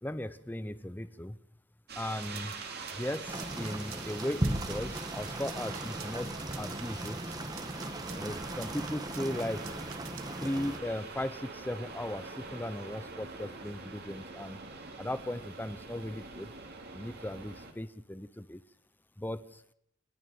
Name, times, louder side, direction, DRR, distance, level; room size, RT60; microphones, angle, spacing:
voice 1, 0.0-1.4 2.0-2.6 3.0-7.4 8.2-9.7 10.4-14.6 15.0-16.5 16.9-18.6 19.2-19.6, left 1 dB, 10° left, 13 dB, 0.7 m, -37 dB
sound 1, 1.9-17.7, right 4 dB, 50° right, 3.0 m, -44 dB
sound 2, 2.1-10.4, right 10 dB, 75° right, 1.8 m, -49 dB
sound 3, 3.3-10.8, right 1 dB, 20° right, 1.3 m, -37 dB
29.0 x 9.8 x 9.3 m, 0.74 s
head